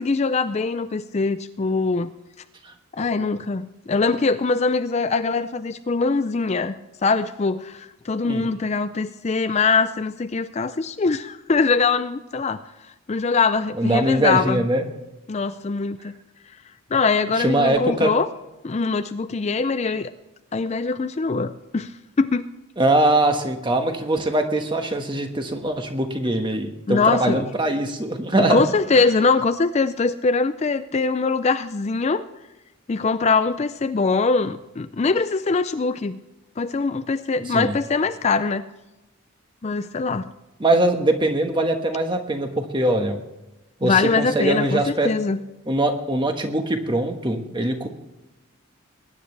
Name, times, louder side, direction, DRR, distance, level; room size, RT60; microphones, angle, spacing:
voice 1, 0.0-2.1 2.9-6.8 7.0-12.6 13.1-14.6 15.3-16.1 16.9-18.3 18.6-20.1 20.5-22.5 26.9-27.4 28.4-32.2 32.9-36.2 36.6-38.6 39.6-40.3 43.8-45.4, left 4 dB, 30° left, 11 dB, 0.4 m, -22 dB
voice 2, 13.8-14.9 17.4-18.1 22.8-28.6 28.9-29.0 37.5-37.7 40.6-43.2 43.8-45.1 45.7-47.9, right 1 dB, 20° right, 5 dB, 1.3 m, -22 dB
21.0 x 10.0 x 3.3 m, 0.98 s
head